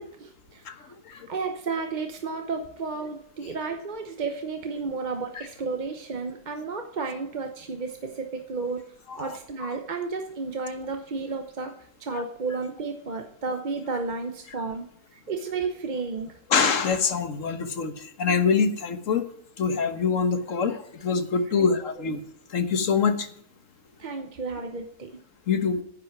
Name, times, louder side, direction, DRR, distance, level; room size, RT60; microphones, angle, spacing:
voice 1, 0.0-8.8 9.2-11.7 12.0-16.4 21.6-21.7 24.0-25.2, right 4 dB, 35° right, 5 dB, 0.9 m, -32 dB
voice 2, 9.1-9.7 12.1-12.2 16.5-19.2 19.6-22.2 22.5-23.3 25.5-25.8, left 5 dB, 60° left, 9 dB, 1.5 m, -25 dB
10.5 x 8.9 x 6.0 m, 0.67 s
omnidirectional pair, 1.5 m